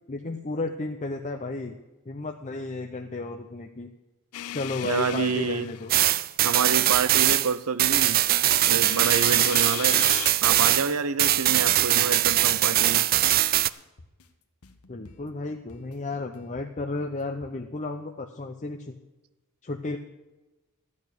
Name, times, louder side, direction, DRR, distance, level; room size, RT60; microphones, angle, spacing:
voice 1, 0.1-1.8 2.1-3.9 4.5-5.9 14.9-18.9 19.6-20.0, left 3 dB, 35° left, 4 dB, 0.7 m, -33 dB
sound 1, 4.3-6.4 8.7-10.3, left 13 dB, 70° left, 0.4 m, -36 dB
voice 2, 4.8-5.7 6.4-8.2 8.6-10.0 10.4-13.0, right 5 dB, 75° right, 15 dB, 0.7 m, -28 dB
sound 2, 5.9-10.9 11.2-13.7, right 14 dB, 40° right, 0.4 m, -21 dB
sound 3, 12.3-17.5, left 2 dB, 90° left, 1.2 m, -52 dB
12.5 x 8.6 x 6.7 m, 1.1 s
head